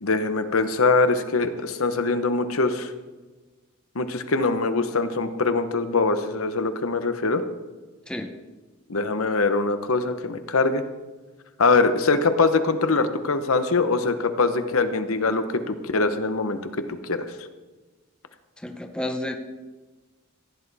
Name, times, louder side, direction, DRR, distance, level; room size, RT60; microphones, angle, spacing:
voice 1, 0.0-2.9 3.9-7.4 8.9-10.8 11.6-16.6 16.9-17.3, left 3 dB, 85° left, 10 dB, 1.0 m, -23 dB
voice 2, 18.6-19.4, left 1 dB, 5° left, 5 dB, 0.7 m, -31 dB
16.0 x 10.0 x 4.1 m, 1.3 s
head